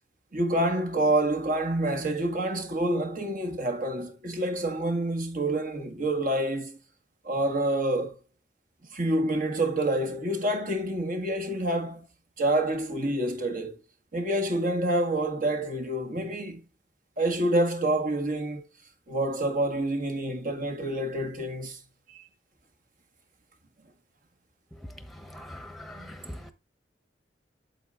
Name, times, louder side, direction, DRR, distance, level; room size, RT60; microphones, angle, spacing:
voice 1, 0.3-6.8 7.2-8.2 8.9-12.1 12.4-13.8 14.1-16.6 17.2-18.7 19.1-21.8 22.1-22.3 26.0-26.1, right 1 dB, 50° right, 1.6 m, -27 dB
voice 2, 25.2-26.5, left 1 dB, ahead, 1.1 m, -42 dB
8.6 x 7.6 x 2.4 m
head